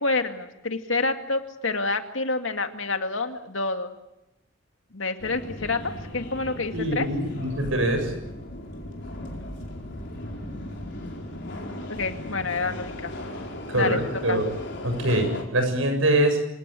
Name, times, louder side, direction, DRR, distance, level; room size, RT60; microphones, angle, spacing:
voice 1, 0.0-3.9 4.9-5.8 6.1-7.1 11.9-13.1 13.7-14.0 14.3-14.4, left 3 dB, 75° left, 7 dB, 2.3 m, -28 dB
Subway metro underground, 5.2-15.4, left 1 dB, 60° left, 4.8 m, -37 dB
voice 2, 6.7-8.1 13.7-14.5 14.8-16.4, right 1 dB, 85° right, 5 dB, 7.6 m, -24 dB
27.5 x 18.0 x 8.4 m, 0.93 s
head